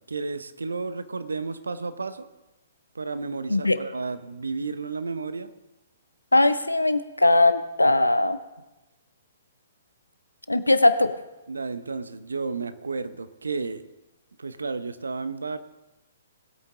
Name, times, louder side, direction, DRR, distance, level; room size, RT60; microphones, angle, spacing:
voice 1, 0.1-2.3 2.9-5.5 11.5-13.8 14.4-15.6, right 4 dB, 75° right, 13 dB, 0.8 m, -32 dB
voice 2, 3.5-3.8 6.3-8.4 10.5-11.1, left 2 dB, 90° left, 13 dB, 0.7 m, -20 dB
20.0 x 8.3 x 3.7 m, 1.0 s
figure-of-eight pair, 120°, 0 cm